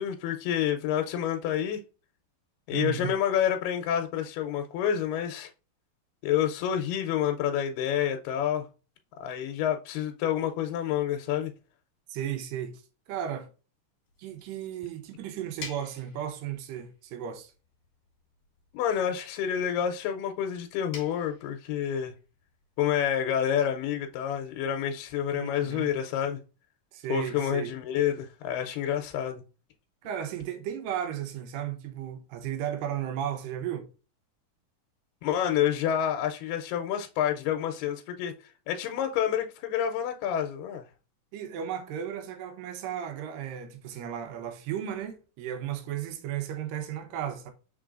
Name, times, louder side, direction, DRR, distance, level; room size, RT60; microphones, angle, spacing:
voice 1, 0.0-1.8 2.7-5.5 6.2-8.7 9.2-11.5 18.7-22.1 22.8-26.4 27.1-29.4 35.2-38.3 38.7-40.9, left 9 dB, 85° left, 2.2 m, -28 dB
voice 2, 2.7-3.1 12.1-13.5 14.2-17.5 25.3-25.9 26.9-27.7 30.0-33.9 41.3-47.5, right 10 dB, 90° right, 2.4 m, -35 dB
sound 1, 14.0-25.2, left 4 dB, 50° left, 1.7 m, -52 dB
4.9 x 3.8 x 2.4 m
omnidirectional pair, 3.8 m